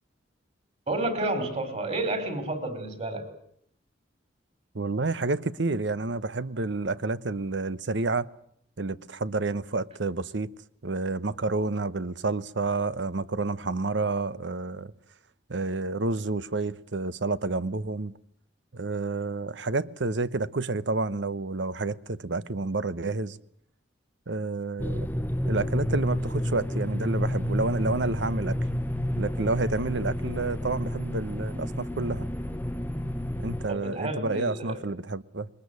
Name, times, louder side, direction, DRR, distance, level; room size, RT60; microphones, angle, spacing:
voice 1, 0.9-3.2 33.7-34.8, right 2 dB, 35° right, 4.7 m, -30 dB
voice 2, 4.7-8.3 8.8-10.5 10.8-14.9 15.5-18.1 18.7-23.4 24.3-25.1 25.4-28.6 29.2-32.3 33.4-35.5, right 3 dB, 70° right, 0.9 m, -29 dB
sound 1, 24.8-33.7, equal, 10° left, 0.9 m, -30 dB
21.5 x 20.0 x 9.5 m
head